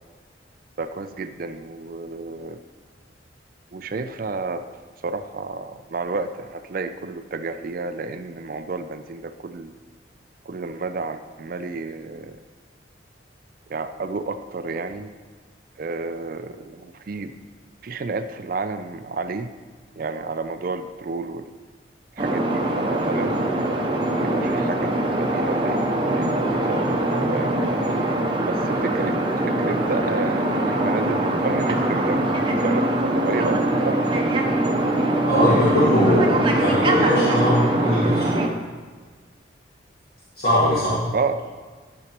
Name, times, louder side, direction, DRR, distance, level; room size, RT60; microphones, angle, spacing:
voice 1, 0.8-2.6 3.7-4.6 5.0-9.7 10.5-12.4 13.7-15.1 15.8-17.3 17.8-19.5 20.0-21.5 22.1-23.8 24.2-27.5 28.5-34.0 41.1-41.4, right 3 dB, 45° right, 10 dB, 0.4 m, -31 dB
sound 1, 22.2-38.5, right 1 dB, 25° right, 0.7 m, -22 dB
voice 2, 35.3-38.4 40.4-41.0, left 1 dB, 55° left, -10 dB, 1.9 m, -20 dB
11.5 x 7.1 x 3.0 m, 1.5 s
head